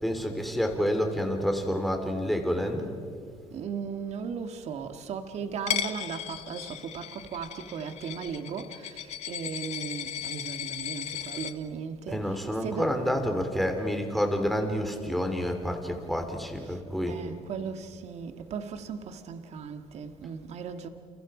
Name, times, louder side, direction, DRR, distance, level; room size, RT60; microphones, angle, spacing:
voice 1, 0.0-2.9 12.1-17.2, equal, ahead, 3.4 m, -28 dB
voice 2, 3.5-13.0 16.6-16.8 17.1-20.9, right 6 dB, 55° right, 1.8 m, -37 dB
Coin (dropping), 5.7-11.5, left 9 dB, 55° left, 1.2 m, -36 dB
29.5 x 29.0 x 5.0 m
cardioid pair, 125°, 13 cm